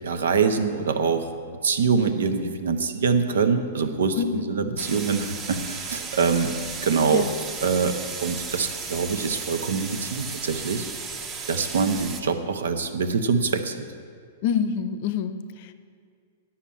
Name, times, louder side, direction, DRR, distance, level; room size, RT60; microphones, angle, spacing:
voice 1, 0.0-1.3 1.6-6.5 6.8-7.3 7.6-10.9 11.5-13.9, right 5 dB, 85° right, 8 dB, 0.9 m, -24 dB
voice 2, 4.2-4.5 7.1-7.3 14.4-15.7, left 7 dB, 55° left, 12 dB, 0.6 m, -27 dB
sound 1, 4.8-12.2, right 5 dB, 30° right, 1.0 m, -35 dB
10.0 x 5.8 x 8.6 m, 2.2 s
hypercardioid pair, 135°, 0 cm